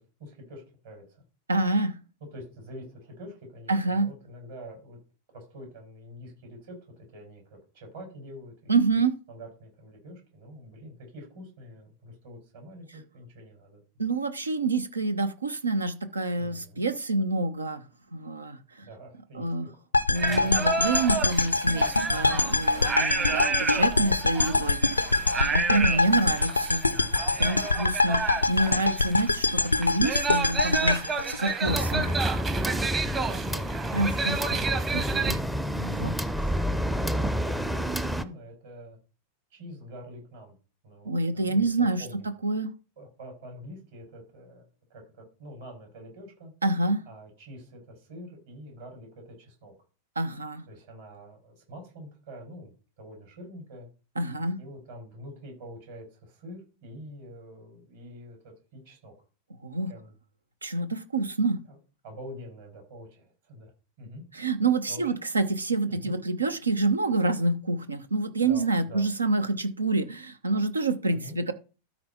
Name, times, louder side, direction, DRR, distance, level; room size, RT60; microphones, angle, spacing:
voice 1, 0.2-1.2 2.3-5.0 5.3-8.7 9.3-13.8 16.3-16.8 18.8-19.7 20.2-20.6 22.0-22.4 26.9-27.4 33.0-33.8 36.2-39.0 39.5-40.6 40.8-41.7 42.0-42.3 43.0-44.6 44.9-46.5 47.1-49.7 50.7-53.9 54.6-59.1 59.9-60.1 61.7-61.8 62.0-63.7 64.0-64.2 64.9-65.0 65.9-66.2 68.4-69.1 71.1-71.4, equal, 55° right, 1 dB, 5.7 m, -45 dB
voice 2, 1.5-2.0 3.7-4.1 8.7-9.2 14.0-17.8 18.1-18.9 19.3-19.7 20.1-26.8 27.4-32.1 33.9-34.7 34.9-35.4 35.7-36.1 41.0-42.0 42.4-42.7 46.6-47.0 50.2-50.6 54.2-54.6 59.6-59.9 60.6-61.6 64.3-71.5, right 2 dB, 80° right, 12 dB, 0.9 m, -27 dB
sound 1, 19.9-32.1, left 3 dB, 85° left, 0.5 m, -25 dB
sound 2, 20.2-35.3, right 5 dB, 25° right, 1.1 m, -31 dB
sound 3, 31.6-38.2, equal, 5° right, 0.6 m, -29 dB
13.0 x 4.5 x 4.3 m, 0.34 s
figure-of-eight pair, 90°, 0 cm